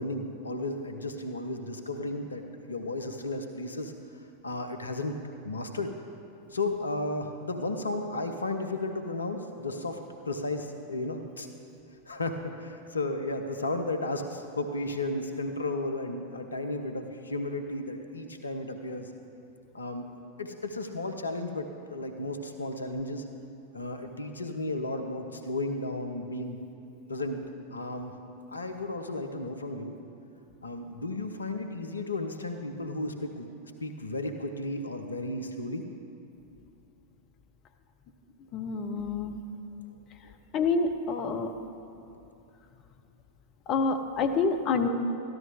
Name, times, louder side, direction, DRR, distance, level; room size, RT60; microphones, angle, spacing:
voice 1, 0.0-2.4 2.7-3.9 4.4-5.2 5.4-5.9 6.5-11.5 12.1-19.1 19.7-20.1 20.4-23.2 23.7-26.6 27.1-28.2 28.5-30.0 30.6-33.5 33.8-35.8 39.9-40.0 40.2-40.3 42.1-42.2, left 2 dB, 75° left, 6 dB, 0.7 m, -34 dB
voice 2, 38.5-39.4 40.5-41.5 43.7-44.9, left 4 dB, 35° left, 6 dB, 0.7 m, -27 dB
13.5 x 12.5 x 3.6 m, 2.7 s
figure-of-eight pair, 90°, 0 cm